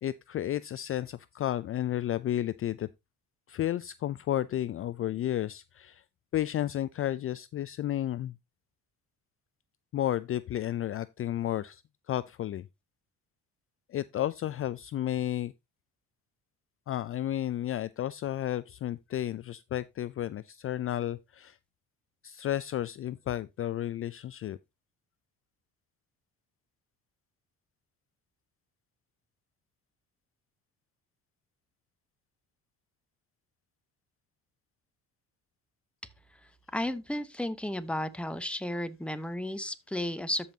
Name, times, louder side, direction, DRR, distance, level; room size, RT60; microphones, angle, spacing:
voice 1, 0.0-2.9 3.5-6.0 6.3-8.3 9.9-11.8 12.1-12.6 13.9-15.5 16.9-21.5 22.2-24.6, left 12 dB, 45° left, 0.4 m, -32 dB
voice 2, 36.7-40.5, left 1 dB, 5° left, 1.0 m, -33 dB
13.5 x 5.5 x 2.8 m
cardioid pair, 85°, 32 cm